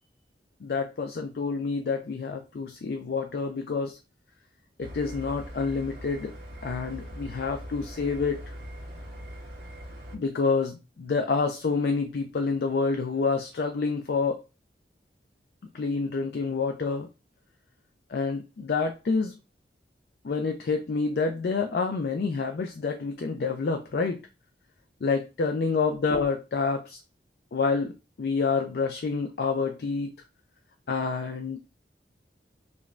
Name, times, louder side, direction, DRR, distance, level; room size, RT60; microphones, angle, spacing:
voice 1, 0.6-4.0 4.8-6.3 6.6-8.4 10.1-14.4 15.7-17.1 18.1-19.4 20.2-24.2 25.0-27.0 27.5-27.9 28.2-30.1 30.9-31.6, left 4 dB, 60° left, 5 dB, 0.4 m, -28 dB
sound 1, 4.8-10.2, equal, 60° right, 1.0 m, -41 dB
5.0 x 2.2 x 2.4 m, 0.30 s
head